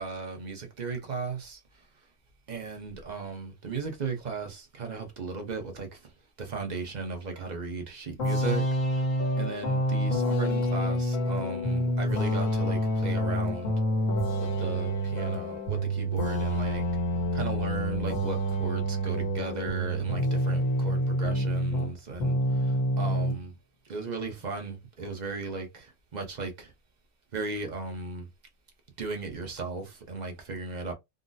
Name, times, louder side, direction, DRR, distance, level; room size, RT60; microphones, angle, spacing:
voice 1, 0.0-1.6 2.5-6.1 6.4-8.7 8.9-9.0 9.4-13.7 14.4-16.9 17.3-23.6 23.9-26.7 27.3-28.3 29.0-30.9, right 4 dB, 40° right, 0.9 m, -36 dB
sound 1, 8.2-21.9 22.2-23.4, equal, 85° left, 1.3 m, -27 dB
3.8 x 2.1 x 2.6 m
omnidirectional pair, 1.3 m